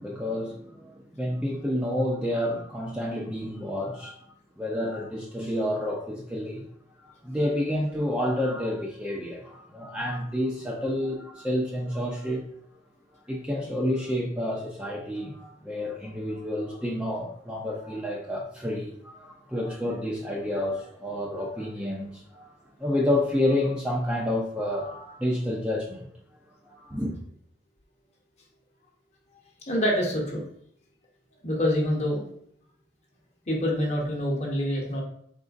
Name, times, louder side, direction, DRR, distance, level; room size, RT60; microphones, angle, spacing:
voice 1, 0.0-4.1 4.6-6.6 7.0-12.4 13.3-26.1 26.6-27.1, left 1 dB, 5° right, 0.5 m, -29 dB
voice 2, 29.7-30.4 31.4-32.2 33.5-35.0, equal, 35° left, 0.9 m, -26 dB
4.1 x 3.7 x 2.5 m
head